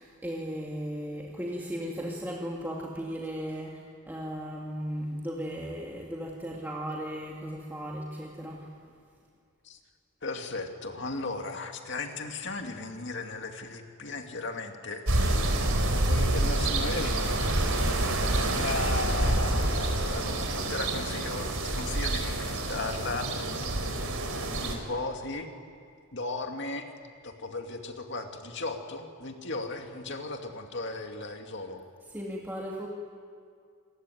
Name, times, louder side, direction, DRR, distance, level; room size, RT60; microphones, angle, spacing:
voice 1, 0.0-8.7 32.1-32.9, equal, 10° right, -3 dB, 2.2 m, -36 dB
voice 2, 10.2-15.4 15.9-18.0 18.3-23.3 24.6-25.5 26.1-31.8, left 3 dB, 55° left, 4 dB, 2.4 m, -36 dB
sound 1, 15.1-24.8, right 1 dB, 75° right, 4.1 m, -27 dB
27.5 x 21.5 x 9.4 m, 2.2 s
head